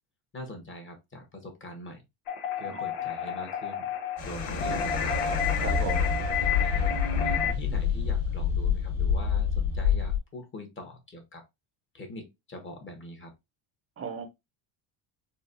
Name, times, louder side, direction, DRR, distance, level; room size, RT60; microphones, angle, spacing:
voice 1, 0.3-2.0 2.6-3.9 4.2-5.4 6.4-11.4 11.9-13.3, left 1 dB, 25° left, 1.1 m, -43 dB
sound 1, 2.3-7.5, left 6 dB, 80° left, 1.1 m, -31 dB
sound 2, 4.2-10.2, left 6 dB, 40° left, 1.5 m, -27 dB
voice 2, 5.6-6.1 14.0-14.3, right 6 dB, 30° right, 0.7 m, -35 dB
4.1 x 2.3 x 2.4 m
cardioid pair, 115°, 50 cm